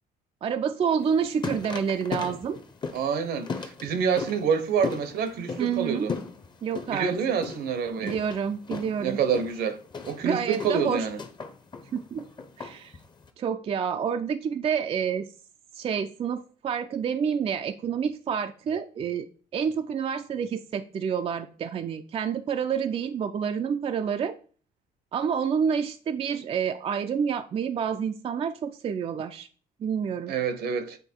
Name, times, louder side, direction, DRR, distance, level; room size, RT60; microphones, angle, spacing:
voice 1, 0.4-2.6 3.8-3.9 5.6-6.1 6.6-7.2 8.0-9.2 10.2-11.1 11.9-12.3 12.6-13.0 13.4-15.3 15.7-19.3 19.5-24.3 25.1-29.5 29.8-30.3, right 7 dB, 35° right, 0.4 m, -28 dB
sound 1, 1.0-13.3, left 4 dB, 25° left, 0.8 m, -38 dB
voice 2, 2.9-6.1 6.9-8.2 9.0-9.8 10.0-11.2 30.3-31.0, right 6 dB, 70° right, 0.9 m, -27 dB
7.9 x 3.1 x 4.5 m
cardioid pair, 110°, 17 cm